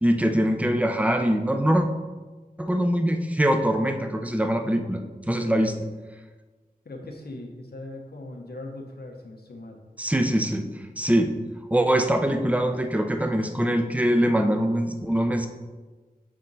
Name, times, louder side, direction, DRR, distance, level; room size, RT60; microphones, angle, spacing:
voice 1, 0.0-1.9 2.6-5.0 5.3-5.7 10.0-10.6 11.0-11.3 11.7-15.5, equal, 10° right, 6 dB, 0.6 m, -23 dB
voice 2, 5.3-5.7 6.8-9.8, left 2 dB, 90° left, 2 dB, 1.0 m, -40 dB
7.5 x 4.3 x 4.0 m, 1.3 s
wide cardioid pair, 70°, 16 cm